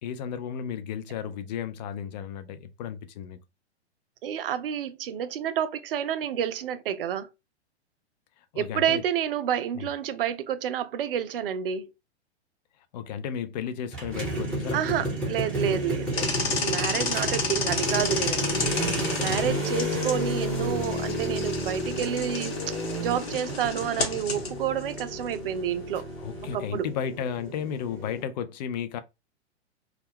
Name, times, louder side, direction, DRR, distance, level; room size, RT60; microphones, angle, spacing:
voice 1, 0.0-3.4 8.5-9.0 9.7-9.9 12.9-15.8 16.4-16.6 19.3-19.6 26.2-29.0, left 8 dB, 40° left, 0.4 m, -34 dB
voice 2, 4.2-7.3 8.6-11.9 14.7-18.7 19.2-26.1 26.5-26.9, right 9 dB, 55° right, 0.5 m, -29 dB
sound 1, 13.9-28.2, right 1 dB, 5° left, 0.9 m, -32 dB
sound 2, 16.1-26.5, left 4 dB, 65° left, 1.1 m, -32 dB
2.3 x 2.1 x 3.3 m
figure-of-eight pair, 110°, 34 cm